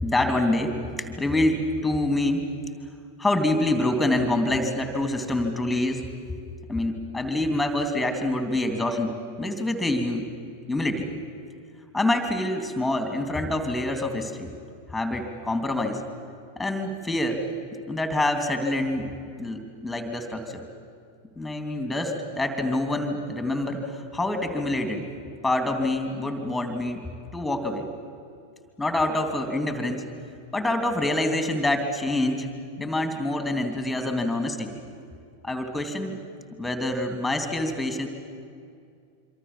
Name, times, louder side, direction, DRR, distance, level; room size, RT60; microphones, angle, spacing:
voice 1, 0.0-2.4 3.2-6.0 6.7-10.2 10.7-11.1 11.9-14.5 14.9-16.0 16.6-17.4 17.9-19.1 19.4-20.6 21.4-25.1 25.4-27.0 27.3-27.9 28.8-30.0 30.5-32.5 32.8-34.7 35.4-36.2 36.6-38.1, left 1 dB, 5° left, 6 dB, 3.0 m, -26 dB
26.0 x 25.0 x 7.5 m, 2.3 s
figure-of-eight pair, 90°, 0 cm